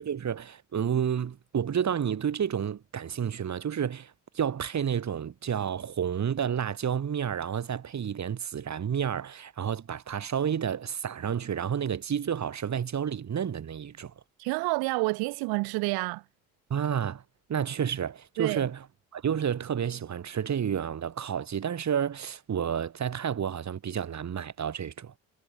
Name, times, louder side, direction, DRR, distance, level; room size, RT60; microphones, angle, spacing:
voice 1, 0.0-14.1 16.7-17.2 17.5-18.9 19.1-25.1, right 8 dB, 45° right, 3.2 m, -30 dB
voice 2, 14.4-16.2 18.4-18.6, right 25 dB, 75° right, 1.3 m, -28 dB
hypercardioid pair, 60°, 38 cm